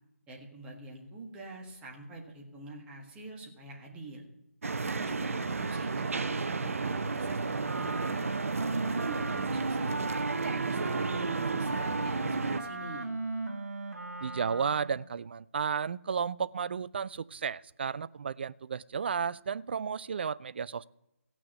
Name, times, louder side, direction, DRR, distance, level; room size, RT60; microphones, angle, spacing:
voice 1, 0.3-4.2 5.0-8.2 8.9-9.9 10.4-13.1, right 2 dB, 10° right, -1 dB, 1.7 m, -45 dB
sound 1, 4.6-12.6, right 4 dB, 60° right, 0.8 m, -32 dB
Wind instrument woodwind instrument, 7.6-15.0, right 3 dB, 80° right, 1.3 m, -36 dB
voice 2, 14.2-20.8, right 6 dB, 40° right, 18 dB, 0.3 m, -33 dB
16.5 x 6.1 x 7.6 m, 0.88 s
figure-of-eight pair, 155°, 8 cm